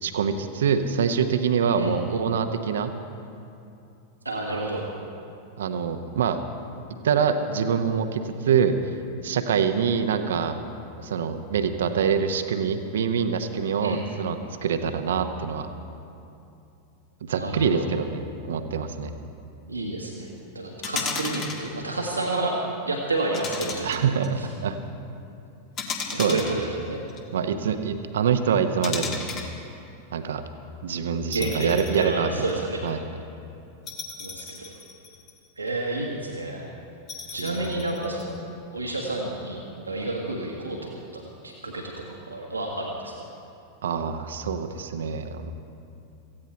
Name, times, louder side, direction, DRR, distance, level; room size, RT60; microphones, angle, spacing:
voice 1, 0.0-2.9 5.6-6.4 7.0-8.8 9.2-10.6 11.0-15.7 17.2-19.1 23.8-24.8 26.1-26.4 27.3-29.3 30.1-30.4 30.8-32.3 32.8-33.0 37.4-37.7 43.8-45.5, right 7 dB, 60° right, 8 dB, 0.9 m, -25 dB
voice 2, 4.2-4.9 13.8-14.0 17.4-17.9 19.7-20.3 20.5-22.6 22.9-24.5 26.1-27.0 31.3-32.8 34.2-34.7 35.6-36.6 37.3-38.4 38.7-39.6 39.8-43.1, right 2 dB, 80° right, -1 dB, 1.4 m, -30 dB
sound 1, 20.8-21.7 23.3-24.3 25.8-27.2 28.8-29.5 31.3-32.1 32.5-32.6 33.9-35.5 37.1-38.2, left 5 dB, 35° left, 1.7 m, -34 dB
17.5 x 15.0 x 4.4 m, 2.7 s
figure-of-eight pair, 90°, 0 cm